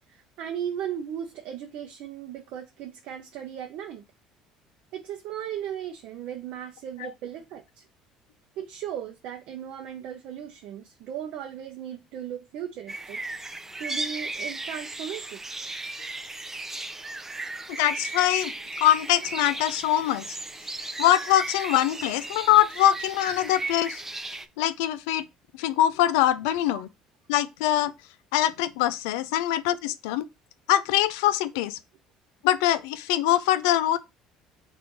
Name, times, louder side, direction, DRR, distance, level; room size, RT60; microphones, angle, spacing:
voice 1, 0.1-4.0 4.9-7.8 8.6-13.2 13.8-15.4 26.7-26.8, right 9 dB, 70° right, 0.6 m, -36 dB
sound 1, 12.9-24.5, right 2 dB, 15° right, 0.5 m, -36 dB
voice 2, 17.7-18.5 18.8-20.4 21.0-24.0 24.6-25.2 25.6-26.9 27.3-27.9 28.3-30.3 30.7-31.8 32.4-34.0, left 13 dB, 80° left, 0.4 m, -23 dB
3.7 x 2.5 x 4.5 m
hypercardioid pair, 75°, 2 cm